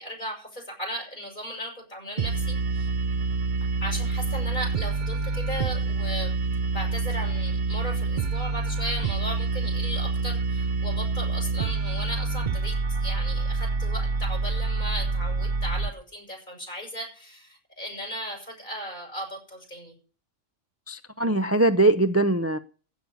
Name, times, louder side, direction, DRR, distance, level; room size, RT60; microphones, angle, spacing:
voice 1, 0.0-2.9 3.8-6.3 6.7-19.9, equal, 40° left, 0 dB, 7.5 m, -36 dB
sound 1, 2.2-15.9, right 3 dB, 45° right, 0.9 m, -27 dB
voice 2, 20.9-22.6, right 2 dB, 20° right, 11 dB, 0.4 m, -21 dB
16.0 x 6.5 x 8.4 m, 0.40 s
omnidirectional pair, 1.2 m